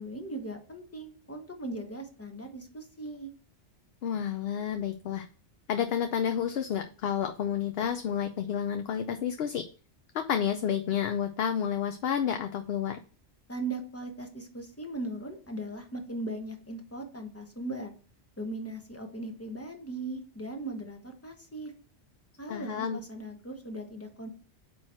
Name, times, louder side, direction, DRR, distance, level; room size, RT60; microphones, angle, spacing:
voice 1, 0.0-3.3 13.5-17.9 18.4-21.7 22.4-24.3, right 2 dB, 15° left, 4 dB, 1.0 m, -38 dB
voice 2, 4.0-5.3 5.7-9.7 10.1-13.0 22.5-23.0, left 8 dB, 65° left, 7 dB, 0.7 m, -30 dB
8.6 x 3.1 x 4.3 m, 0.39 s
omnidirectional pair, 1.2 m